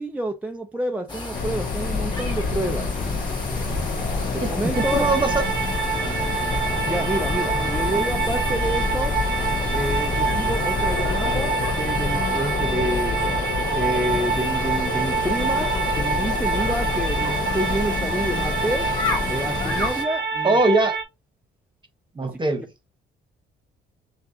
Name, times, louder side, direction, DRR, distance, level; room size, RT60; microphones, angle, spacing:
voice 1, 0.0-2.9 4.3-5.1 6.8-9.2 9.7-13.2 13.7-18.9 19.3-20.6, right 1 dB, 5° right, 0.6 m, -28 dB
sound 1, 1.1-20.0, left 2 dB, 25° left, 2.3 m, -32 dB
sound 2, 1.3-19.9, left 4 dB, 45° left, 0.7 m, -28 dB
voice 2, 4.4-5.4 6.0-6.3 20.4-21.0 22.1-22.7, right 2 dB, 25° right, 1.1 m, -22 dB
sound 3, 4.7-21.0, right 5 dB, 60° right, 0.9 m, -27 dB
6.0 x 2.5 x 2.7 m
cardioid pair, 90°, 20 cm